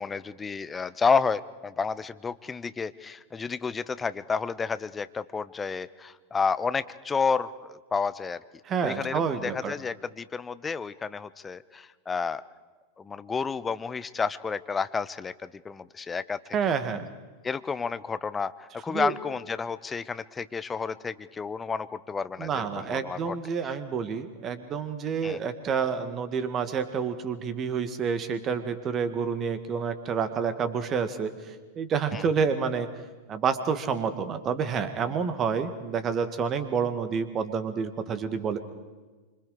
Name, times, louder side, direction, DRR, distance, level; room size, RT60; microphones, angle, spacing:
voice 1, 0.0-8.4 8.8-12.4 13.0-16.6 17.4-23.4 25.2-25.4 32.1-32.3, left 5 dB, 15° left, 14 dB, 0.7 m, -30 dB
voice 2, 8.7-9.7 16.5-17.1 18.9-19.1 22.4-32.9 33.3-38.6, right 6 dB, 30° right, 10 dB, 1.8 m, -29 dB
26.0 x 25.5 x 5.0 m, 1.3 s
figure-of-eight pair, 90°, 0 cm